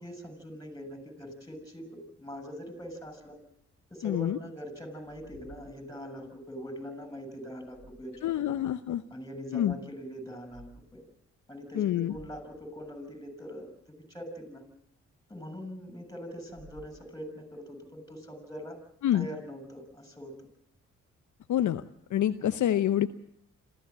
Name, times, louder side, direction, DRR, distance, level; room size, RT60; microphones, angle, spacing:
voice 1, 0.0-3.4 3.9-8.5 9.1-11.0 11.5-14.6 15.3-18.8 19.1-20.4 22.4-22.7, equal, 10° left, 10 dB, 7.1 m, -43 dB
sound 1, 2.8-4.5 4.8-6.5 7.4-8.5 8.9-9.0 10.3-10.7 11.1-11.3 11.7-11.8 12.1-13.4 16.4-17.5, right 1 dB, 25° right, 6.7 m, -57 dB
voice 2, 4.0-4.4 8.2-9.0 9.5-9.8 11.7-12.1 19.0-19.3 21.5-21.8 22.1-23.1, left 11 dB, 60° left, 11 dB, 0.8 m, -27 dB
27.0 x 15.0 x 7.3 m, 0.71 s
hypercardioid pair, 45°, 33 cm